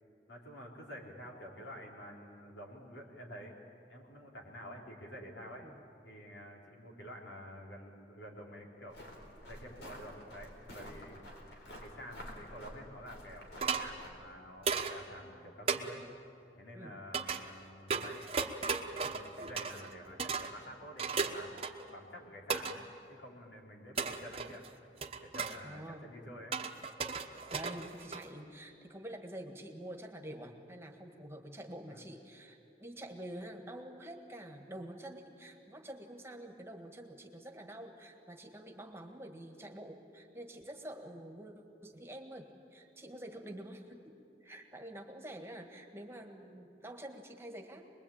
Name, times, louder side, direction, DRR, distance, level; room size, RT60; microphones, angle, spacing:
voice 1, 0.3-3.6 3.9-5.7 6.0-9.0 9.5-11.2 11.8-16.0 16.5-21.6 21.9-24.6 25.2-26.6 31.9-32.0, equal, 90° left, -1 dB, 4.2 m, -49 dB
sound 1, 8.9-14.1, equal, 70° left, 4.3 m, -50 dB
sound 2, 13.6-13.9 14.7-15.0 15.7-15.8 17.1-17.4 17.9-19.9 20.2-20.5 21.0-21.9 22.5-22.8 24.0-24.7 25.0-25.6 26.5-28.4, right 5 dB, 35° right, 1.1 m, -35 dB
voice 2, 25.6-26.1 27.5-41.5 41.8-47.9, right 1 dB, 15° right, 3 dB, 1.7 m, -47 dB
25.0 x 21.5 x 8.9 m, 2.6 s
head